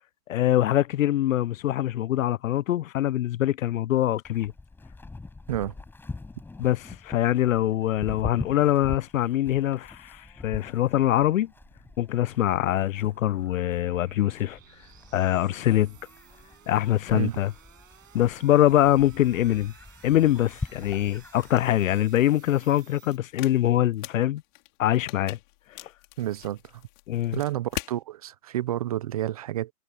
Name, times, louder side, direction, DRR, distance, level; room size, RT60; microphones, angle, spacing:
voice 1, 0.3-4.5 6.6-11.5 12.0-14.6 15.1-15.9 16.7-17.5 18.1-19.7 20.0-24.4 24.8-25.4 25.7-25.9 27.1-27.4, left 13 dB, 65° left, 0.5 m, -24 dB
Livestock farm animals working animals, 4.2-21.9, left 3 dB, 5° left, 6.7 m, -43 dB
sound 1, 10.1-23.2, right 9 dB, 65° right, 6.1 m, -56 dB
sound 2, 21.3-28.0, left 25 dB, 35° left, 5.1 m, -43 dB
voice 2, 26.2-26.8 27.3-29.7, right 13 dB, 25° right, 0.6 m, -30 dB
hypercardioid pair, 155°, 43 cm